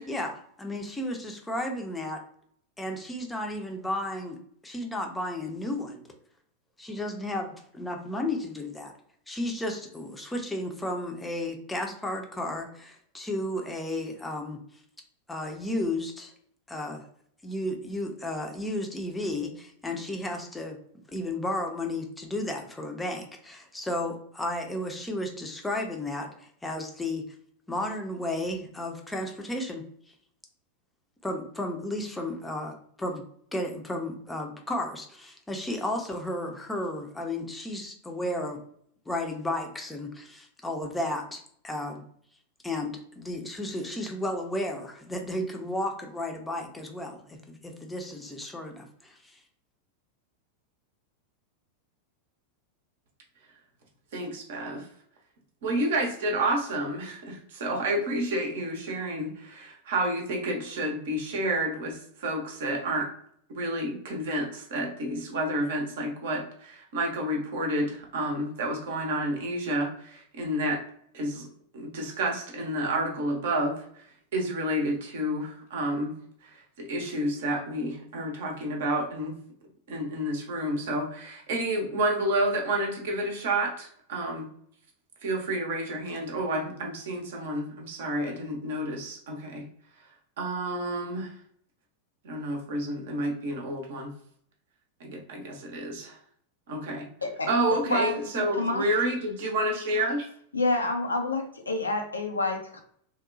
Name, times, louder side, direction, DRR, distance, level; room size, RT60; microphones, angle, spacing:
voice 1, 0.1-2.2 2.8-4.4 4.6-6.0 6.8-8.9 9.3-14.6 15.3-16.3 16.7-17.0 17.4-20.8 21.1-27.2 27.7-29.8 31.2-33.2 33.5-38.6 39.1-42.0 42.6-49.4, left 1 dB, 10° left, 2 dB, 0.5 m, -33 dB
voice 2, 54.1-54.9 55.6-63.1 63.6-70.8 71.1-71.5 71.7-74.0 74.3-76.2 76.4-79.4 79.9-84.5 85.2-89.7 90.4-91.3 92.2-94.1 95.0-96.2 96.7-97.1 97.5-100.3, right 1 dB, 55° right, 2 dB, 0.7 m, -30 dB
voice 3, 97.2-98.9 100.5-102.8, left 2 dB, 80° left, 2 dB, 0.5 m, -28 dB
2.9 x 2.1 x 2.5 m, 0.63 s
figure-of-eight pair, 90°, 0 cm